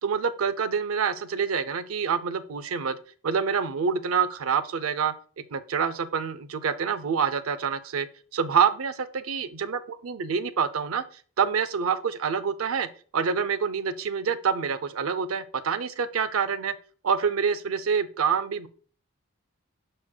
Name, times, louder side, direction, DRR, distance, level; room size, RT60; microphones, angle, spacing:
voice 1, 0.0-3.0 3.2-5.1 5.5-11.0 11.4-16.7 17.0-18.7, right 6 dB, 75° right, 0.6 m, -27 dB
12.5 x 4.4 x 2.2 m
head